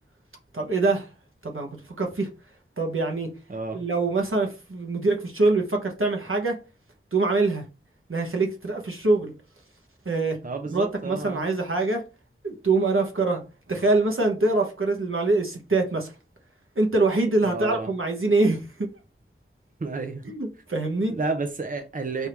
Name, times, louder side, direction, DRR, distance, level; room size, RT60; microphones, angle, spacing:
voice 1, 0.5-1.1 1.4-2.3 2.8-3.3 3.7-6.6 7.1-7.6 8.1-9.3 10.0-10.4 10.7-12.0 12.4-13.4 13.7-16.1 16.8-18.9 20.2-21.2, right 3 dB, 75° right, 1.1 m, -24 dB
voice 2, 3.5-3.8 10.4-11.4 17.4-17.9 19.8-20.3 21.1-22.3, right 3 dB, 40° right, 0.6 m, -31 dB
3.5 x 2.7 x 4.5 m
wide cardioid pair, 45°, 21 cm